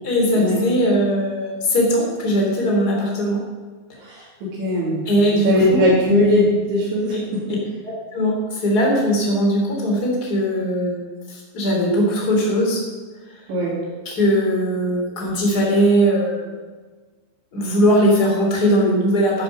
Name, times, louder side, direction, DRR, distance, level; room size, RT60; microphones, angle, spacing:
voice 1, 0.0-3.4 5.0-5.9 7.1-7.2 8.1-11.0 11.3-12.8 14.0-16.5 17.5-19.4, equal, 25° left, -2 dB, 3.1 m, -19 dB
voice 2, 4.0-5.0 5.3-7.4 13.5-13.8, left 1 dB, 80° right, -8 dB, 4.9 m, -19 dB
13.0 x 10.5 x 5.4 m, 1.4 s
omnidirectional pair, 5.2 m